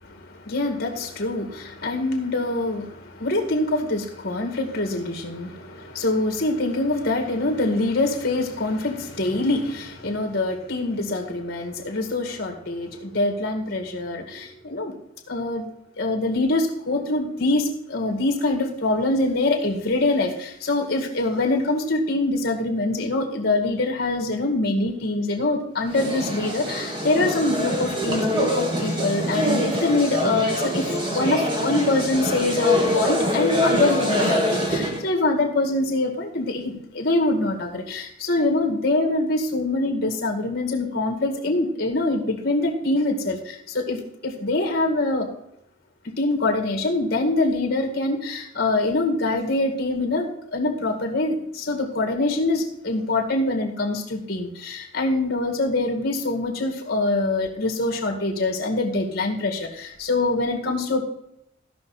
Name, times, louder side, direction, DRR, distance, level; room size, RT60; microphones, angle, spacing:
voice 1, 0.0-14.9 15.3-15.7 16.0-45.3 46.0-61.0, left 2 dB, 50° left, 2 dB, 2.1 m, -24 dB
sound 1, 25.9-35.0, equal, 25° right, 1.7 m, -24 dB
15.5 x 5.7 x 4.3 m, 0.78 s
head